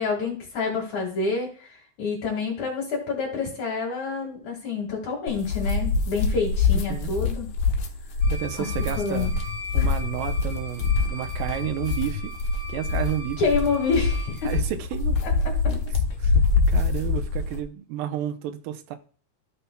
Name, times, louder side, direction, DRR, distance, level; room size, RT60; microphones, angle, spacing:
voice 1, 0.0-7.5 9.0-9.3 9.8-9.9 13.4-14.5 15.2-15.3 15.6-15.7, left 4 dB, 60° left, 3.0 m, -27 dB
sound 1, 5.3-17.6, left 4 dB, 75° left, 1.2 m, -25 dB
voice 2, 6.7-7.1 8.3-9.4 9.7-12.3 12.7-13.4 14.4-15.2 15.7-15.8 16.2-16.4 16.7-19.0, right 11 dB, 80° right, 2.4 m, -31 dB
sound 2, 8.2-14.6, left 1 dB, 20° right, 2.3 m, -40 dB
14.0 x 5.6 x 2.2 m
omnidirectional pair, 3.9 m